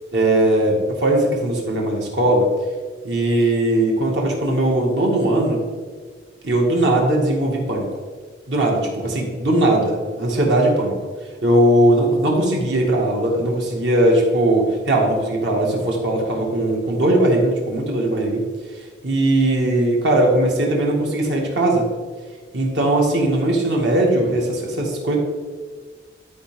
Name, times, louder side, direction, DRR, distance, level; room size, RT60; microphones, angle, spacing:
voice 1, 0.1-2.5 3.0-5.6 6.4-7.9 8.5-11.0 11.4-18.4 19.0-21.9 22.5-25.2, right 1 dB, 65° right, -1 dB, 1.8 m, -19 dB
12.0 x 4.9 x 3.6 m, 1.5 s
head